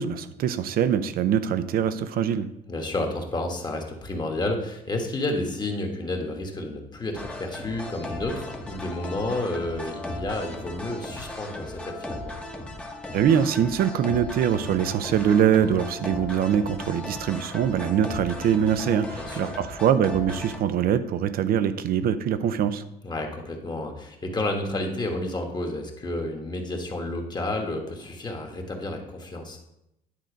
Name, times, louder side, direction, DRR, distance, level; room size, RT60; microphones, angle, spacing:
voice 1, 0.0-2.5 13.1-22.8, right 9 dB, 60° right, 12 dB, 0.6 m, -23 dB
voice 2, 2.7-12.3 19.2-19.6 23.0-29.6, left 2 dB, 25° left, 2 dB, 1.4 m, -31 dB
sound 1, 7.1-20.6, left 2 dB, 5° left, 1.0 m, -37 dB
10.0 x 3.9 x 5.1 m, 0.86 s
cardioid pair, 110°, 17 cm